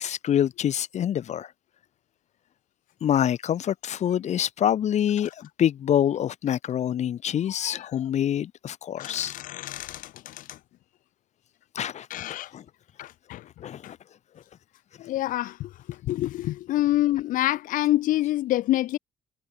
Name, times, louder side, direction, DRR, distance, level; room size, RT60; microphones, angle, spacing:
voice 1, 0.0-1.5 3.0-9.3 11.7-12.1 12.5-12.6 13.6-14.0, left 10 dB, 55° left, 1.4 m, -26 dB
voice 2, 7.6-8.0 9.0-10.6 12.1-12.5 13.0-13.9 15.0-19.0, left 15 dB, 75° left, 0.5 m, -27 dB
cardioid pair, 130°, 14 cm